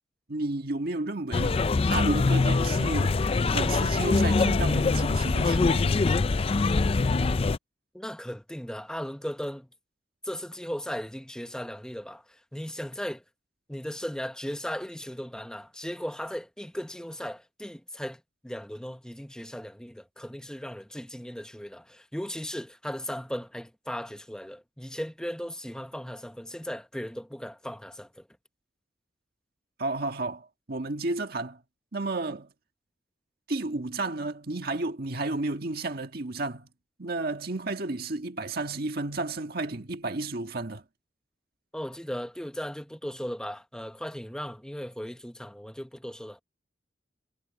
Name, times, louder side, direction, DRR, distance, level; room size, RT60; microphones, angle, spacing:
voice 1, 0.3-3.2 3.5-6.0 29.8-31.6 31.9-32.5 33.5-36.7 37.0-40.8, right 2 dB, 55° right, 1.7 m, -32 dB
sound 1, 1.3-7.6, left 3 dB, 30° left, 0.4 m, -24 dB
voice 2, 7.9-9.7 10.2-12.2 12.5-13.2 13.7-28.1 41.7-46.4, equal, 5° left, 1.0 m, -37 dB
head